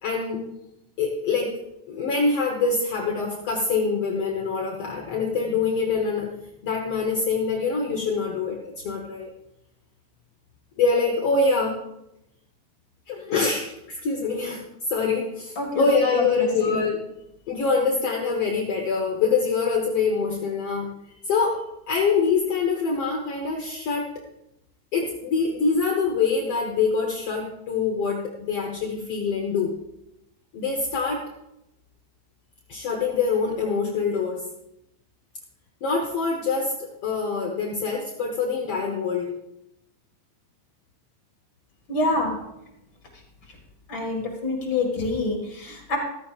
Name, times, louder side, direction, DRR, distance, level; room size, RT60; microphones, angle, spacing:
voice 1, 0.0-0.4 1.0-6.4 6.6-9.3 10.8-11.8 13.1-14.6 14.9-17.0 17.5-20.9 21.3-24.1 24.9-29.7 30.5-31.2 32.7-34.4 35.8-39.3, left 4 dB, 70° left, 0 dB, 1.4 m, -25 dB
voice 2, 15.6-15.9 16.2-16.8 41.9-42.4 43.9-46.0, left 2 dB, 40° left, 0 dB, 2.1 m, -26 dB
14.5 x 14.0 x 2.4 m, 0.85 s
omnidirectional pair, 4.3 m